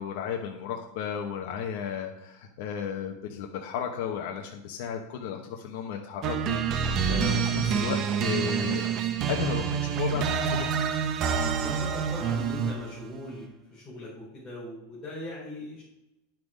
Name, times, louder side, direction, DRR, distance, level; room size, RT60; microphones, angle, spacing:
voice 1, 0.0-8.8 9.3-10.7, left 8 dB, 50° left, 1 dB, 1.0 m, -34 dB
sound 1, 6.2-12.9, right 7 dB, 30° right, 0.7 m, -27 dB
voice 2, 11.5-15.8, left 1 dB, 15° left, -11 dB, 3.9 m, -40 dB
10.5 x 6.0 x 5.0 m, 0.91 s
supercardioid pair, 170°, 0 cm